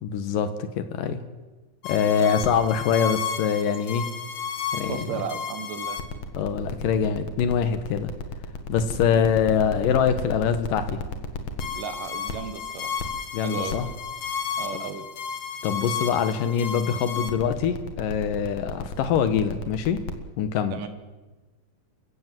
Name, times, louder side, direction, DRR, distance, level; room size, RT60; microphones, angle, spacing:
voice 1, 0.0-1.2 1.8-4.1 4.7-5.1 6.4-8.1 8.7-11.0 13.3-13.9 14.7-14.8 15.6-20.0 20.4-20.8, left 7 dB, 80° left, 10 dB, 2.8 m, -24 dB
sound 1, 1.8-20.1, left 6 dB, 55° left, 2.6 m, -32 dB
voice 2, 4.9-6.0 11.8-12.9 13.4-13.8 14.6-15.1 20.7-20.9, right 7 dB, 75° right, 9 dB, 3.0 m, -34 dB
28.0 x 15.5 x 7.7 m, 1.2 s
omnidirectional pair, 3.9 m